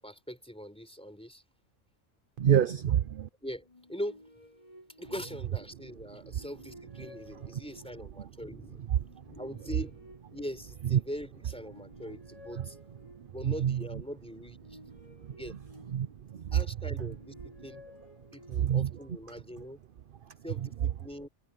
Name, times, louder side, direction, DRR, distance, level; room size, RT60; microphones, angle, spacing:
voice 1, 0.0-1.4 3.4-4.3 5.0-8.8 9.2-10.0 10.3-12.8 13.3-14.8 15.3-15.6 16.5-17.8 18.3-19.8 20.4-21.3, equal, 5° left, 4.6 m, -42 dB
voice 2, 2.4-3.3 6.3-6.4 7.4-7.6 8.2-8.3 8.9-9.4 10.9-11.0 12.6-12.7 13.0-14.0 14.9-15.6 15.9-16.6 17.0-17.1 18.6-18.9 19.6-19.7 20.2-20.7, right 10 dB, 55° right, 0.7 m, -29 dB
sound 1, 3.6-5.7 6.2-8.2 8.9-11.1 11.5-13.6 14.3-16.4 16.9-18.9, left 1 dB, 30° left, 4.3 m, -54 dB
omnidirectional pair, 1.3 m